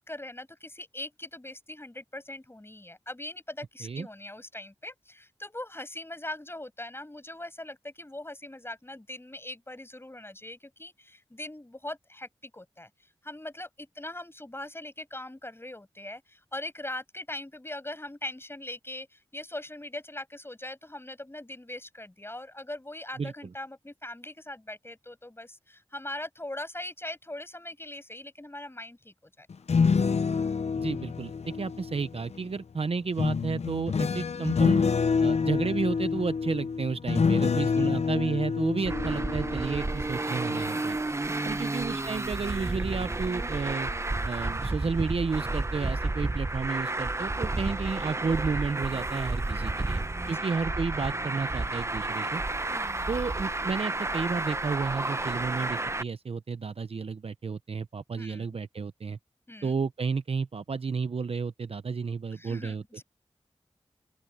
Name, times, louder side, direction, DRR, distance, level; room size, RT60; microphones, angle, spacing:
voice 1, 0.0-12.9 13.2-29.5 37.6-37.9 39.1-39.2 39.7-40.0 41.4-41.8 49.4-49.8 50.2-50.3 52.7-53.1 58.2-58.5 59.5-59.8 62.3-63.0, left 1 dB, 20° left, 7.9 m, -41 dB
sound 1, 29.5-32.4 33.2-40.1 40.5-40.8, left 5 dB, 85° left, 0.7 m, -27 dB
voice 2, 30.8-34.8 35.2-41.0 41.4-43.9 44.2-52.4 53.1-59.2 59.6-62.8, right 5 dB, 65° right, 0.7 m, -32 dB
Traffic noise roadway noise, 38.8-56.0, right 2 dB, 25° right, 0.7 m, -31 dB
open air
wide cardioid pair, 65°, 11 cm